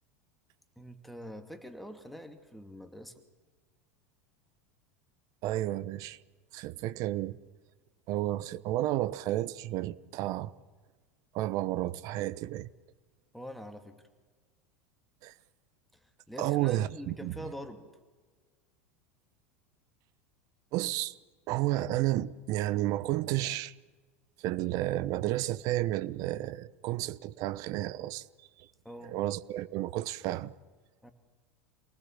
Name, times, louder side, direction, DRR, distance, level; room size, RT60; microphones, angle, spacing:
voice 1, 0.8-3.1 13.3-14.0 16.0-17.9 28.8-29.2 31.0-31.1, equal, ahead, 2.5 m, -45 dB
voice 2, 5.4-6.2 6.5-7.4 8.1-10.5 11.3-12.7 15.2-15.3 16.4-17.4 20.7-21.2 21.5-23.7 24.4-28.2 28.6-28.7 29.1-30.5, right 15 dB, 50° right, 0.9 m, -31 dB
27.5 x 19.0 x 7.4 m
hypercardioid pair, 85°, 8 cm